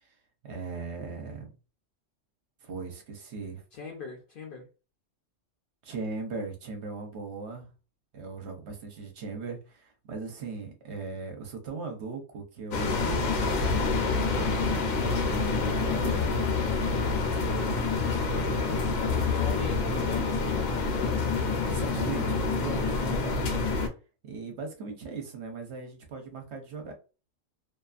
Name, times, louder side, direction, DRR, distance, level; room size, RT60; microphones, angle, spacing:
voice 1, 0.4-1.5 2.6-3.6 5.8-7.7 8.1-16.5 19.0-20.1 21.7-23.5 24.2-26.9, right 4 dB, 65° right, 0.9 m, -39 dB
voice 2, 3.7-4.6 17.5-20.9, left 5 dB, 55° left, 0.6 m, -42 dB
sound 1, 12.7-23.9, left 4 dB, 90° left, 1.1 m, -27 dB
2.6 x 2.4 x 2.3 m
omnidirectional pair, 1.3 m